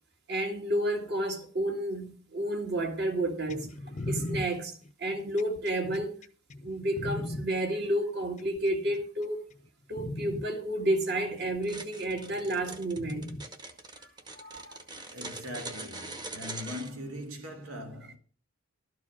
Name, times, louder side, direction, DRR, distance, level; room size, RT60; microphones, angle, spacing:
voice 1, 0.3-3.7 4.1-4.7 5.0-6.1 6.6-9.4 9.9-13.3 14.3-14.8, right 1 dB, 50° right, 1.9 m, -31 dB
sound 1, 3.5-7.4 8.4-9.0 9.5-9.7 10.0-10.4 11.6-11.7 13.0-13.4 14.6-14.7, left 1 dB, 35° left, 0.6 m, -37 dB
sound 2, 11.6-16.9, right 2 dB, 20° right, 1.0 m, -42 dB
voice 2, 15.1-18.2, left 1 dB, 80° right, 2.4 m, -41 dB
12.5 x 4.8 x 7.1 m
head